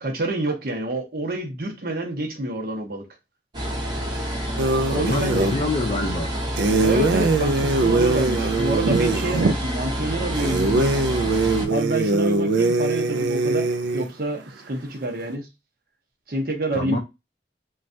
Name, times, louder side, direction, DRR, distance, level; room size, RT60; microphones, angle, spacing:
voice 1, 0.0-3.0 4.9-5.7 6.8-11.0 11.7-15.5 16.3-17.0, right 1 dB, 55° right, 0.8 m, -27 dB
sound 1, 3.5-11.7, equal, 25° right, 0.6 m, -28 dB
Brazilian Dream, 4.6-5.6 6.6-9.5 10.4-14.1, right 3 dB, 80° right, 0.4 m, -22 dB
voice 2, 4.9-6.3 16.7-17.0, left 2 dB, 40° left, 0.4 m, -26 dB
3.2 x 2.3 x 2.5 m
head